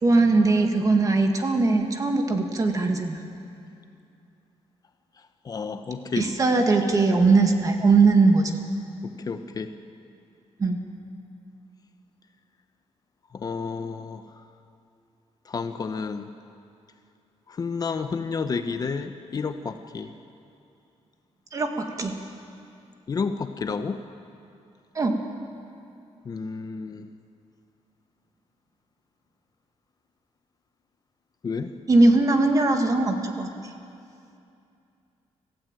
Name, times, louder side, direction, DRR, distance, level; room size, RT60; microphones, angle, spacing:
voice 1, 0.0-3.2 6.2-8.6 10.6-10.8 21.5-22.1 25.0-25.2 31.9-33.7, right 3 dB, 30° right, 4 dB, 2.1 m, -20 dB
voice 2, 5.4-6.3 9.0-9.8 13.3-14.4 15.4-16.3 17.5-20.1 23.1-24.0 26.2-27.1 31.4-31.7, left 5 dB, 35° left, 8 dB, 0.9 m, -31 dB
26.0 x 15.5 x 9.0 m, 2.6 s
cardioid pair, 150°, 11 cm